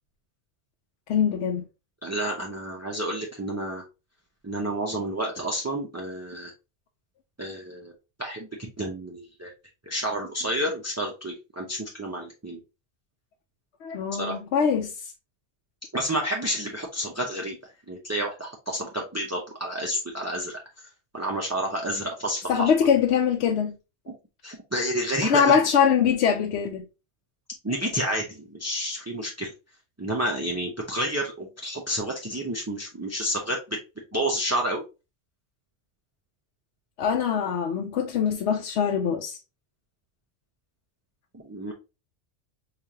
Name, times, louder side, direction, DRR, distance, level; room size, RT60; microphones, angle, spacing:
voice 1, 1.1-1.6 13.8-14.9 22.5-23.7 25.2-26.9 37.0-39.4, left 7 dB, 70° left, 0.8 m, -23 dB
voice 2, 2.0-3.8 4.4-6.5 7.4-7.9 8.2-9.5 9.9-12.6 14.2-14.4 15.9-17.6 17.9-20.6 21.1-22.7 24.1-24.2 24.4-25.6 27.6-29.5 30.0-33.8 34.1-34.8 41.4-41.7, right 1 dB, 25° right, 0.4 m, -30 dB
4.9 x 2.5 x 2.8 m
omnidirectional pair, 1.2 m